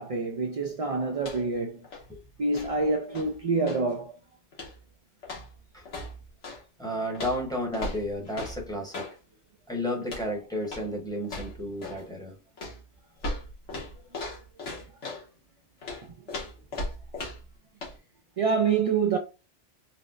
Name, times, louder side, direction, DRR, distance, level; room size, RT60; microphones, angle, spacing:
voice 1, 0.0-1.8 2.4-4.1 18.4-19.2, right 4 dB, 60° right, 0.3 m, -26 dB
sound 1, 1.2-1.6 1.8-3.9 4.5-4.9 5.2-6.6 7.1-9.2 10.0-10.3 10.6-10.9 11.2-12.1 12.6-15.3 15.8-17.5 17.8-18.0, left 2 dB, 85° left, 1.5 m, -38 dB
voice 2, 6.8-9.1 9.7-12.3, equal, 5° left, 0.9 m, -32 dB
4.2 x 2.1 x 2.4 m
omnidirectional pair, 1.2 m